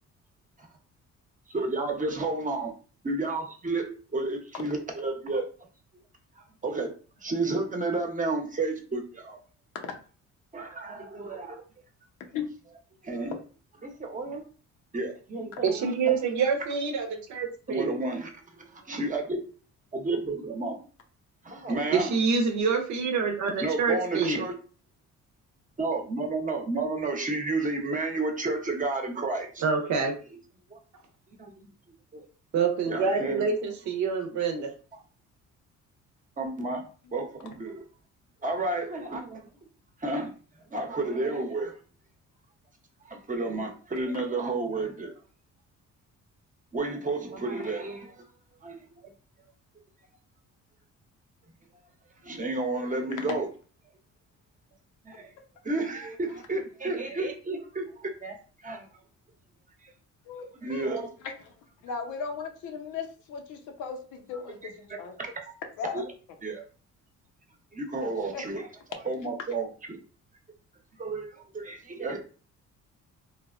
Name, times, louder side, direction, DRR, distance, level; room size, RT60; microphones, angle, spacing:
voice 1, 1.5-2.7 3.0-5.5 6.6-6.9 7.2-9.4 10.5-11.6 13.0-13.4 13.8-14.4 14.9-16.2 17.7-19.4 19.9-20.8 21.4-22.1 23.6-24.5 25.8-29.6 30.7-30.8 31.4-31.7 32.1-32.3 32.9-33.5 36.4-36.8 37.1-37.8 38.4-39.5 40.0-40.3 40.7-41.8 43.0-45.1 46.7-48.2 48.6-48.8 52.2-53.5 55.0-55.3 55.6-58.4 58.6-58.9 59.8-59.9 60.6-61.1 64.9-65.5 65.9-66.0 66.4-66.6 67.7-68.6 69.0-70.0 71.0-72.2, right 2 dB, 25° right, 3 dB, 0.8 m, -31 dB
voice 2, 15.6-18.0 21.9-24.4 29.6-30.2 32.5-34.7, right 5 dB, 70° right, 5 dB, 0.7 m, -26 dB
voice 3, 60.2-60.9 61.2-61.5 61.8-65.1 65.8-66.0 68.0-68.7, left 5 dB, 85° left, 3 dB, 0.7 m, -37 dB
3.2 x 2.2 x 2.4 m, 0.38 s
cardioid pair, 90°, 30 cm